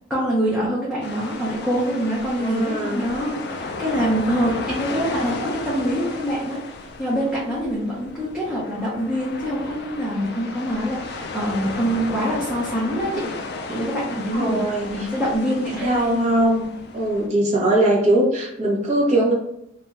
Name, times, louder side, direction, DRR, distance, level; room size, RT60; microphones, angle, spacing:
voice 1, 0.1-6.6 7.0-13.3 13.7-16.1, equal, 5° right, -9 dB, 0.6 m, -25 dB
sound 1, 1.0-17.3, left 3 dB, 55° left, 0.3 m, -34 dB
voice 2, 2.4-3.0 14.3-15.1 15.8-16.7 16.9-19.3, right 1 dB, 35° right, -4 dB, 0.8 m, -21 dB
2.5 x 2.2 x 3.1 m, 0.79 s
head